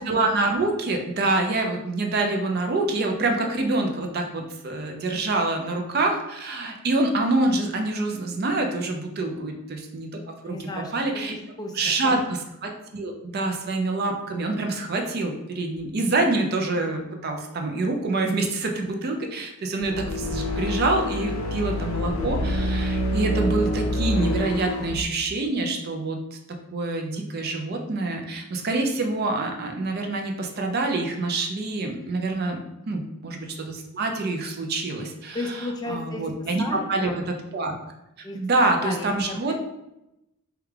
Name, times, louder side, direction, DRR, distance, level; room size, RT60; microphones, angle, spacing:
voice 1, 0.0-10.1 10.4-11.4 11.7-32.6 32.8-37.7 38.2-39.6, right 2 dB, 50° right, 3 dB, 0.4 m, -26 dB
voice 2, 10.5-12.2 32.8-33.1 35.3-36.3 36.6-37.2 38.2-38.4 38.8-39.6, left 2 dB, 20° left, 2 dB, 0.3 m, -35 dB
sound 1, 19.8-25.0, left 1 dB, 85° left, 0.5 m, -27 dB
3.2 x 2.3 x 3.4 m, 0.89 s
head